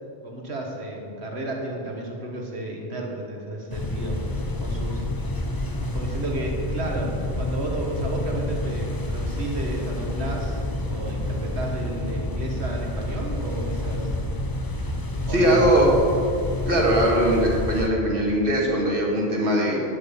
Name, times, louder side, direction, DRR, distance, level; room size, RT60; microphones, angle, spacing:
voice 1, 0.2-5.3 5.9-10.6 10.9-14.2 15.3-15.6, right 1 dB, 80° right, 0 dB, 1.9 m, -32 dB
sound 1, 3.7-17.9, left 1 dB, 20° left, 0.8 m, -29 dB
voice 2, 15.3-15.9 16.7-19.8, right 1 dB, 55° right, -2 dB, 2.3 m, -20 dB
11.5 x 9.7 x 5.3 m, 2.6 s
omnidirectional pair, 1.1 m